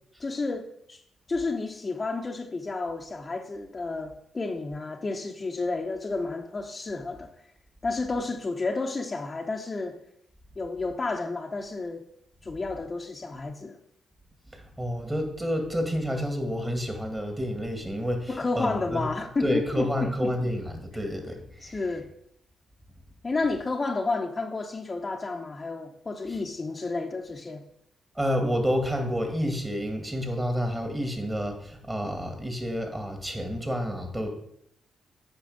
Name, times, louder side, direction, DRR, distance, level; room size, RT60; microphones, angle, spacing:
voice 1, 0.2-1.0 1.3-7.3 7.8-10.0 10.6-12.0 12.4-13.8 18.3-20.4 21.6-22.1 23.2-27.6, left 3 dB, 35° left, 0.9 m, -31 dB
voice 2, 14.5-19.1 19.4-21.8 28.2-34.3, equal, 20° right, 2.5 m, -29 dB
8.5 x 5.4 x 5.2 m
supercardioid pair, 50°, 0 cm